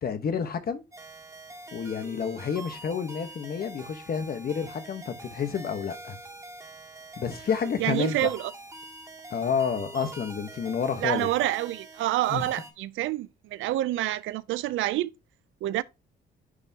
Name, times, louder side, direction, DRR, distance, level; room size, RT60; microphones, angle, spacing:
voice 1, 0.0-0.8 1.7-6.2 7.2-8.3 9.3-11.3 12.3-12.4, left 6 dB, 50° left, 1.1 m, -30 dB
sound 1, 0.9-12.7, right 2 dB, 15° right, 2.1 m, -45 dB
voice 2, 7.8-8.5 11.0-15.1 15.6-15.8, right 15 dB, 80° right, 0.4 m, -27 dB
9.7 x 3.5 x 2.8 m
cardioid pair, 90°, 20 cm